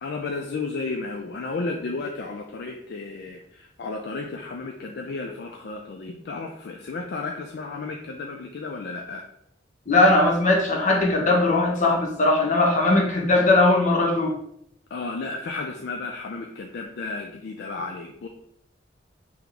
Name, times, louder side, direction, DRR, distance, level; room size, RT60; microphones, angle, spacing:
voice 1, 0.0-9.2 14.9-18.3, left 3 dB, 60° left, 3 dB, 0.4 m, -33 dB
voice 2, 9.9-14.3, left 2 dB, 45° left, -1 dB, 0.9 m, -19 dB
3.4 x 3.0 x 3.7 m, 0.73 s
head